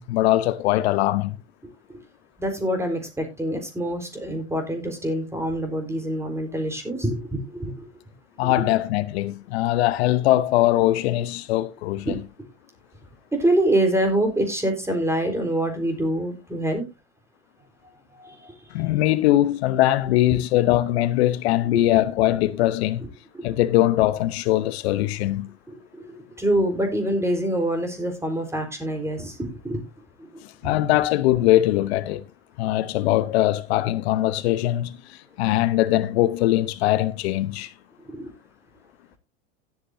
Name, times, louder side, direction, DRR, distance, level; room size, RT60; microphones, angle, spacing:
voice 1, 0.0-1.4 8.4-12.2 18.7-23.0 23.4-25.5 30.6-32.2 32.6-37.7, left 15 dB, 75° left, 0.9 m, -21 dB
voice 2, 2.4-7.9 8.4-8.7 12.1-12.2 13.3-16.8 18.2-18.5 21.7-21.8 23.3-23.6 25.7-29.8 30.6-30.7 38.1-38.3, right 1 dB, 10° right, 3.9 m, -25 dB
16.5 x 8.5 x 2.6 m
hypercardioid pair, 100°, 32 cm